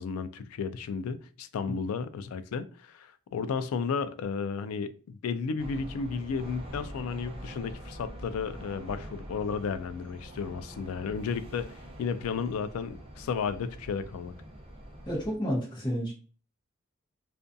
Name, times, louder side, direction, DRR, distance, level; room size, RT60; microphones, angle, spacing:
voice 1, 0.0-11.7 12.0-14.3, left 5 dB, 90° left, 0.3 m, -33 dB
sound 1, 5.6-15.4, equal, 25° right, 0.5 m, -44 dB
voice 2, 15.1-16.1, equal, 20° left, 0.8 m, -30 dB
2.5 x 2.2 x 2.5 m
head